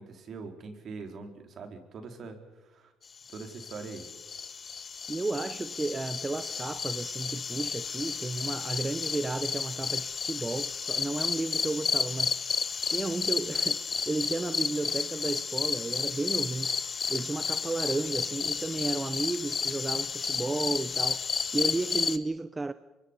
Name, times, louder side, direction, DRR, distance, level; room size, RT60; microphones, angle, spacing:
voice 1, 0.0-2.9 3.3-4.1, right 4 dB, 55° right, 4.1 m, -43 dB
sound 1, 3.3-22.2, left 6 dB, 40° left, 1.2 m, -32 dB
voice 2, 5.1-12.5 12.8-16.7 17.1-21.2 21.5-22.7, right 3 dB, 20° right, 0.8 m, -33 dB
25.0 x 24.0 x 5.4 m
supercardioid pair, 70°, 0 cm